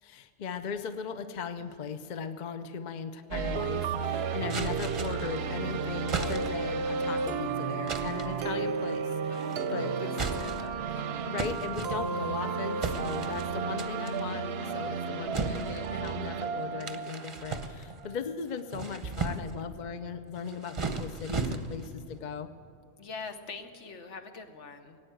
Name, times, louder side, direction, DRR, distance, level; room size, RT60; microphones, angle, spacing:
voice 1, 0.0-10.1 11.2-22.5, left 6 dB, 45° left, 10 dB, 0.7 m, -38 dB
sound 1, 3.3-18.2, right 5 dB, 60° right, 0.8 m, -33 dB
sound 2, 4.5-5.4 6.1-6.7 7.9-8.4 9.3-9.7 10.1-10.8 11.4-12.3 12.8-13.5 13.8-14.2 15.3-16.2 16.8-18.1 18.5-19.6 20.4-21.9, right 4 dB, 30° right, 0.8 m, -36 dB
voice 2, 9.3-9.7 10.0-11.0 23.0-25.0, left 4 dB, 70° left, 7 dB, 1.3 m, -44 dB
18.0 x 9.2 x 7.8 m, 2.6 s
omnidirectional pair, 1.3 m